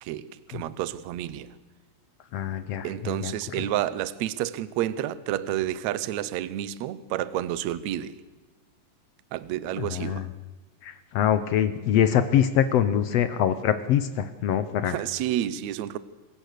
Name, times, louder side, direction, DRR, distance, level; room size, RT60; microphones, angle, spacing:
voice 1, 0.0-1.6 2.8-8.2 9.3-10.3 14.9-16.0, right 12 dB, 70° right, 16 dB, 1.8 m, -30 dB
voice 2, 2.3-3.3 3.6-3.7 9.8-10.2 10.8-14.9, left 9 dB, 75° left, 12 dB, 1.4 m, -24 dB
26.5 x 16.0 x 6.7 m, 1.2 s
omnidirectional pair, 4.0 m